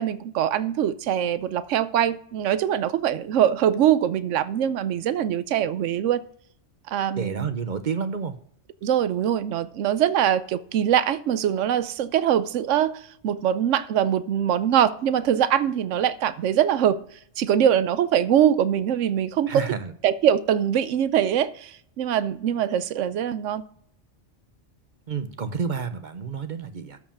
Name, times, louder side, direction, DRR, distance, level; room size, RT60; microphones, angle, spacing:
voice 1, 0.0-6.2 6.9-7.5 8.8-17.0 17.4-19.6 20.0-23.6, right 10 dB, 80° right, 1.0 m, -23 dB
voice 2, 7.2-8.4 19.5-19.9 25.1-27.0, right 6 dB, 45° right, 0.8 m, -29 dB
13.0 x 4.8 x 7.1 m
omnidirectional pair, 1.2 m